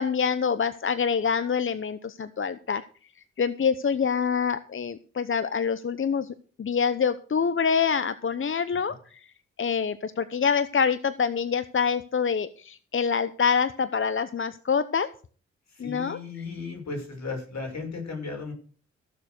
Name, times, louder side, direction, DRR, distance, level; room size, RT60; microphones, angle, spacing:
voice 1, 0.0-2.8 3.4-9.3 9.6-15.1 15.8-16.2, left 6 dB, 45° left, 14 dB, 0.9 m, -26 dB
voice 2, 15.7-18.5, left 4 dB, 65° left, 1 dB, 6.1 m, -36 dB
15.0 x 6.9 x 6.5 m, 0.41 s
cardioid pair, 55°, 29 cm